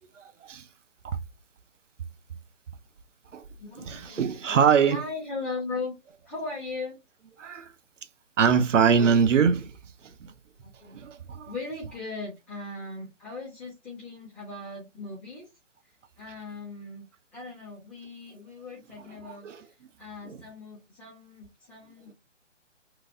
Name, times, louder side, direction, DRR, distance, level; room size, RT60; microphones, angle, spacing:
voice 1, 0.2-0.6 1.0-1.2 3.3-3.4 3.8-5.0 7.4-7.7 8.4-9.7 10.0-10.3 10.9-11.5 19.2-19.6 20.2-20.4, right 6 dB, 75° right, 0.6 m, -23 dB
voice 2, 3.6-5.9 6.2-7.0 10.6-11.0 11.4-15.5 15.8-17.0 17.3-22.1, left 3 dB, 5° left, 0.5 m, -38 dB
3.0 x 2.4 x 2.4 m
figure-of-eight pair, 140°, 37 cm